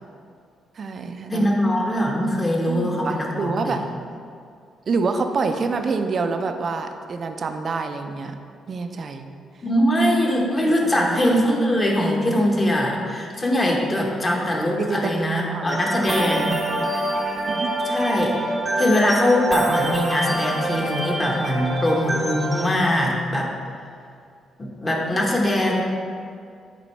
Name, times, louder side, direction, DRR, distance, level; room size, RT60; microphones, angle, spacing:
voice 1, 0.7-1.5 2.7-3.8 4.9-8.4 8.7-9.3 10.8-11.2 14.8-16.0 17.5-17.7, right 4 dB, 50° right, 6 dB, 0.4 m, -27 dB
voice 2, 1.3-3.7 9.6-16.6 17.8-18.3 18.8-23.5 24.6-25.8, left 1 dB, 25° left, -1 dB, 1.2 m, -22 dB
sound 1, 15.7-22.8, right 1 dB, 20° right, 0.8 m, -26 dB
7.7 x 4.4 x 3.2 m, 2.3 s
cardioid pair, 90°, 0 cm